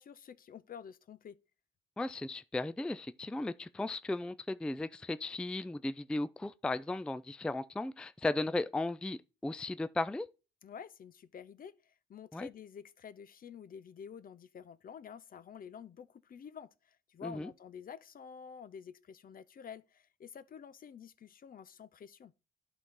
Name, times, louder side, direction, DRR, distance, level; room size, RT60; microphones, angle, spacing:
voice 1, 0.0-1.4 10.6-22.3, left 7 dB, 45° left, 0.6 m, -49 dB
voice 2, 2.0-10.3 12.3-12.5 17.2-17.5, left 2 dB, 5° left, 0.3 m, -36 dB
11.0 x 4.0 x 3.7 m
cardioid pair, 90°, 20 cm